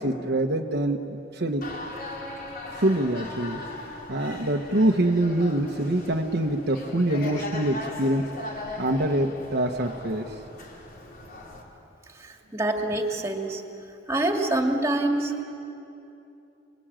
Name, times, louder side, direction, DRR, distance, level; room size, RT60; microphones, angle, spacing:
voice 1, 0.0-1.6 2.8-3.6 4.1-8.3 8.8-10.3, right 1 dB, 55° right, 2 dB, 1.2 m, -25 dB
sound 1, 1.6-11.6, left 2 dB, 50° left, 4.4 m, -38 dB
voice 2, 12.2-13.6 14.1-15.4, right 2 dB, 15° right, 2 dB, 2.4 m, -26 dB
27.5 x 21.5 x 9.0 m, 2.9 s
head